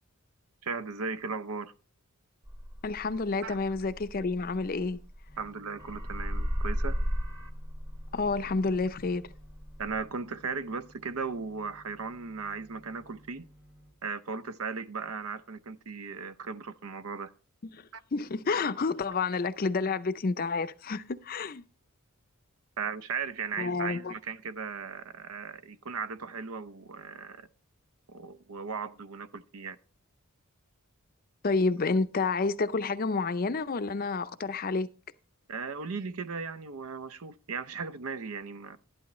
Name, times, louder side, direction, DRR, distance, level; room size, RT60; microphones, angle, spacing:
voice 1, 0.6-1.7 3.4-3.6 5.4-7.0 9.8-13.4 14.0-17.3 17.9-18.0 22.8-27.5 28.1-29.8 35.5-38.8, right 5 dB, 75° right, 0.6 m, -37 dB
sound 1, 2.5-5.5 5.8-10.0, equal, 15° right, 1.1 m, -35 dB
voice 2, 2.8-5.0 8.1-9.2 17.7-17.8 18.1-21.6 23.6-24.1 31.4-34.9, left 4 dB, 40° left, 0.5 m, -29 dB
sound 2, 5.3-13.9, equal, 60° right, 2.7 m, -57 dB
11.5 x 11.0 x 3.1 m
head